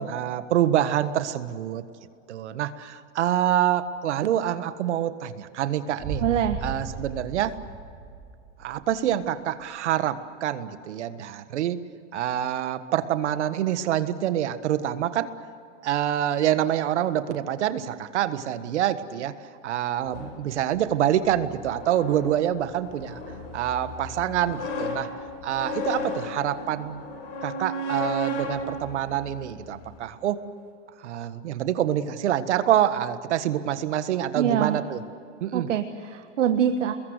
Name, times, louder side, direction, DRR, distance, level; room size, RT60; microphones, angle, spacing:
voice 1, 0.0-1.8 2.3-6.2 6.6-7.5 8.6-11.8 12.1-15.3 15.8-19.3 19.6-23.2 23.5-25.1 25.4-27.0 27.4-30.4 31.0-35.0 35.4-35.7, right 11 dB, 70° right, 11 dB, 1.6 m, -26 dB
sound 1, 6.0-9.0, right 4 dB, 15° right, 6.0 m, -36 dB
voice 2, 6.2-6.6 34.4-34.8 35.5-36.9, right 9 dB, 85° right, 7 dB, 1.6 m, -24 dB
sound 2, 20.1-30.0, left 2 dB, 50° left, 6.5 m, -35 dB
30.0 x 21.5 x 8.1 m, 2.3 s
supercardioid pair, 170°, 36 cm